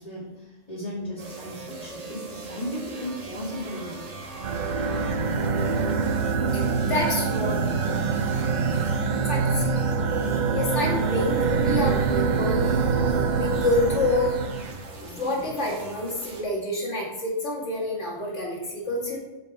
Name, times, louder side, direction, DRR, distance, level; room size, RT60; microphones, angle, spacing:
voice 1, 0.0-4.0, equal, 30° left, -10 dB, 2.7 m, -35 dB
sound 1, 1.2-16.4, right 1 dB, 70° right, 1.8 m, -40 dB
sound 2, 4.4-14.8, right 5 dB, 55° right, 0.5 m, -25 dB
voice 2, 6.5-7.6 9.2-9.6 10.5-12.9 13.3-14.4 15.2-19.2, left 2 dB, 70° left, -3 dB, 2.5 m, -28 dB
8.2 x 6.5 x 4.0 m, 1.1 s
omnidirectional pair, 1.3 m